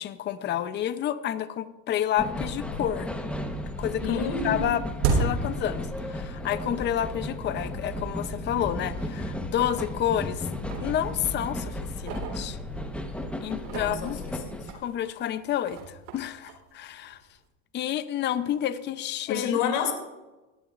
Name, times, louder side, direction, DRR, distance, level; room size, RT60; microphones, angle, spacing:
voice 1, 0.0-3.1 3.8-4.2 4.4-4.8 5.1-10.5 10.8-12.6 13.4-14.2 14.7-17.2 17.7-19.6, left 11 dB, 25° left, 13 dB, 0.6 m, -29 dB
sound 1, 2.2-14.7, left 1 dB, 5° left, 1.0 m, -34 dB
sound 2, 2.2-2.3 2.7-3.3 3.5-6.5 6.8-6.9 7.6-7.7 8.2-8.3 8.7-8.8 9.5-10.1 10.4-13.0 13.5-17.4, right 4 dB, 70° right, 3.6 m, -34 dB
voice 2, 4.0-4.7 13.6-14.6 19.3-19.9, left 6 dB, 65° left, 4 dB, 2.7 m, -29 dB
18.5 x 12.0 x 2.5 m, 1.1 s
supercardioid pair, 125°, 41 cm